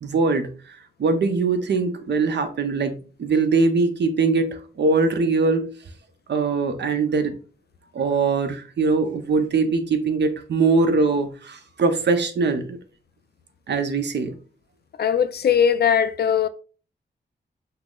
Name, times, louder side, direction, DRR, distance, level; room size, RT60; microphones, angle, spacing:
voice 1, 0.0-5.7 6.3-7.3 7.9-12.8 13.7-14.4, right 4 dB, 65° right, 0.7 m, -22 dB
voice 2, 15.0-16.5, left 8 dB, 60° left, 0.4 m, -19 dB
5.6 x 2.1 x 3.7 m
wide cardioid pair, 115°, 19 cm